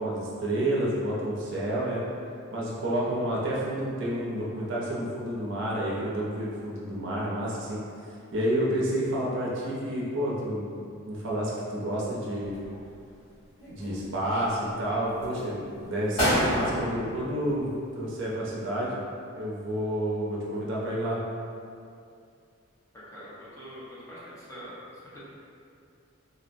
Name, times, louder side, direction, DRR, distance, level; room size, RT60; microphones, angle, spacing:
voice 1, 0.0-2.0 2.5-12.6 13.7-19.0 19.3-21.2, right 1 dB, 55° right, -5 dB, 0.5 m, -30 dB
sound 1, 12.4-13.2 13.6-14.5 15.0-15.4 15.8-15.9 16.2-18.1 18.4-18.5, equal, 80° left, 1.4 m, -29 dB
voice 2, 23.1-25.2, equal, 15° left, -10 dB, 0.6 m, -44 dB
4.0 x 2.0 x 2.5 m, 2.4 s
head